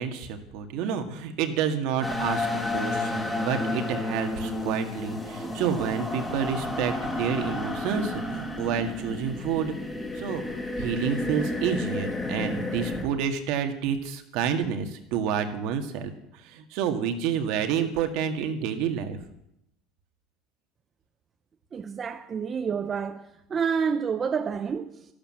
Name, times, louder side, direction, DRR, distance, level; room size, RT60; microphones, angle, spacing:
voice 1, 0.0-9.7 10.2-10.4 10.8-19.2, right 7 dB, 60° right, 1.8 m, -29 dB
sound 1, 2.0-13.0, left 2 dB, 10° left, 2.0 m, -31 dB
voice 2, 21.7-23.2 23.5-25.0, right 6 dB, 25° right, 0.7 m, -28 dB
12.5 x 12.0 x 7.6 m
cardioid pair, 160°, 0 cm